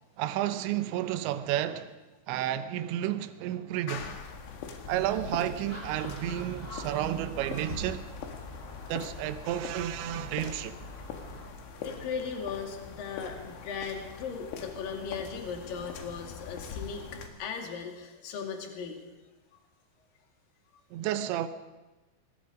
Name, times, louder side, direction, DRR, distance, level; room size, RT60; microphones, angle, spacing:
voice 1, 0.2-2.0 2.3-4.1 4.9-8.1 8.9-10.8 20.9-21.5, right 12 dB, 80° right, 3.2 m, -31 dB
voice 2, 3.9-4.3 11.8-17.1 17.4-19.0, left 6 dB, 55° left, 3.8 m, -37 dB
sound 1, 4.0-17.3, left 6 dB, 80° left, 4.3 m, -43 dB
Gull seagull, 5.7-11.5, left 1 dB, 30° left, 7.0 m, -43 dB
26.0 x 20.0 x 5.3 m
omnidirectional pair, 5.3 m